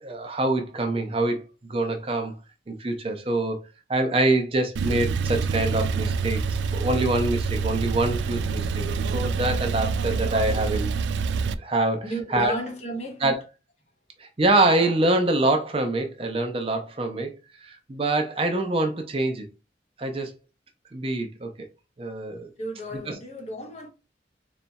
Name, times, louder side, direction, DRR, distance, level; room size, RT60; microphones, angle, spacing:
voice 1, 0.0-2.3 2.7-3.6 3.9-8.9 9.1-10.9 11.6-12.0 12.3-12.6 13.2-13.4 14.2-17.3 17.6-19.5 20.0-20.3 20.9-21.7 22.0-22.5 23.1-23.2, right 2 dB, 30° right, 0.6 m, -25 dB
Male speech man speaking / Car / Idling, 4.8-11.5, right 5 dB, 85° right, 0.3 m, -26 dB
voice 2, 12.0-13.2 22.6-23.9, equal, 40° left, 0.9 m, -33 dB
4.0 x 3.2 x 2.3 m
head